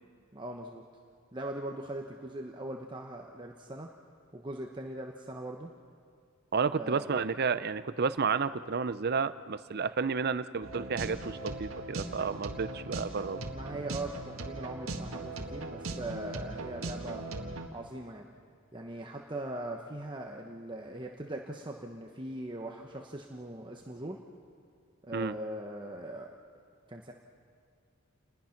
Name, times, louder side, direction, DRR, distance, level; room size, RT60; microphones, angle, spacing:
voice 1, 0.3-0.8 1.3-3.9 4.3-5.7 6.7-7.2 13.5-17.3 17.7-18.3 18.7-24.2 25.0-26.3 26.9-27.1, right 1 dB, 20° right, 1 dB, 1.0 m, -40 dB
voice 2, 6.5-13.5 25.1-25.3, right 5 dB, 50° right, 14 dB, 0.6 m, -31 dB
sound 1, 10.6-17.7, right 2 dB, 75° right, 1.8 m, -39 dB
29.0 x 20.0 x 5.9 m, 2.2 s
head